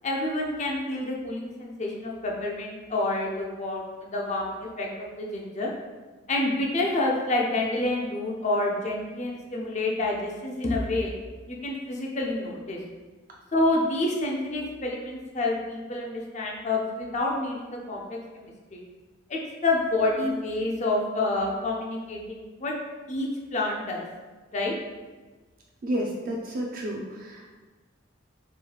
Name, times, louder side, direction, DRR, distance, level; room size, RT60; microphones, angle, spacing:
voice 1, 0.0-5.7 6.3-11.1 11.5-12.8 13.5-18.8 19.3-22.7 23.1-24.1 24.5-24.7, left 2 dB, 35° left, -1 dB, 0.5 m, -28 dB
voice 2, 25.8-27.5, equal, 45° right, -1 dB, 0.4 m, -31 dB
4.6 x 3.1 x 2.3 m, 1.3 s
head